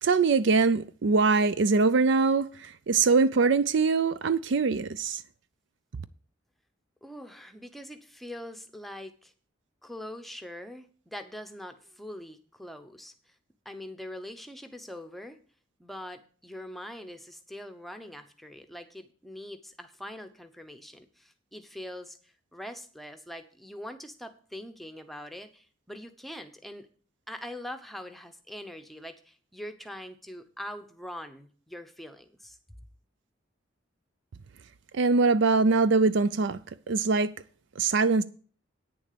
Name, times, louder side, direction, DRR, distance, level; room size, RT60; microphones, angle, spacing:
voice 1, 0.0-5.2 34.9-36.6 36.9-37.3 37.8-38.2, right 4 dB, 60° right, 0.5 m, -23 dB
voice 2, 7.0-9.3 9.8-13.1 13.6-15.4 15.8-26.9 27.3-32.6, left 1 dB, ahead, 0.8 m, -43 dB
9.1 x 7.0 x 6.8 m
head